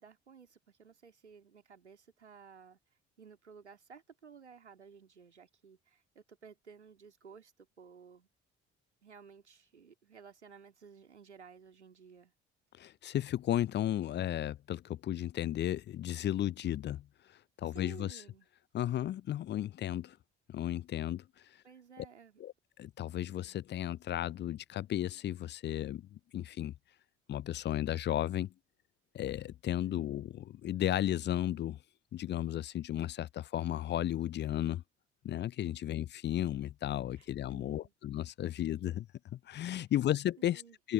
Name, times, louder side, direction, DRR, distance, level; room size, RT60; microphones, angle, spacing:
voice 1, 0.0-2.8 3.2-8.3 9.0-12.3 17.6-18.5 21.6-22.4 29.8-30.0 35.6-35.8 37.2-37.9 39.7-39.8 40.4-40.8, right 6 dB, 85° right, 3.0 m, -55 dB
voice 2, 12.8-17.0 17.6-18.2 18.7-20.2 20.5-21.2 22.4-22.5 22.8-26.7 27.3-28.5 29.1-31.8 32.1-34.8 35.2-39.1 39.3-40.6 40.8-40.9, left 12 dB, 35° left, 0.5 m, -34 dB
figure-of-eight pair, 50°, 33 cm